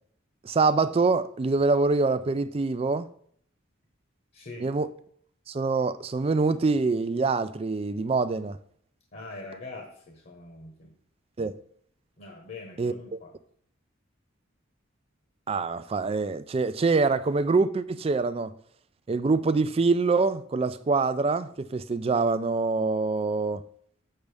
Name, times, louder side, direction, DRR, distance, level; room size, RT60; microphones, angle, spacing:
voice 1, 0.4-3.1 4.6-4.9 5.5-8.6 11.4-11.5 12.8-13.2 15.5-18.5 19.1-23.6, right 3 dB, 30° right, 0.3 m, -25 dB
voice 2, 4.3-4.7 9.1-10.9 12.2-13.3, left 2 dB, 45° left, 1.2 m, -43 dB
7.1 x 6.6 x 3.4 m
head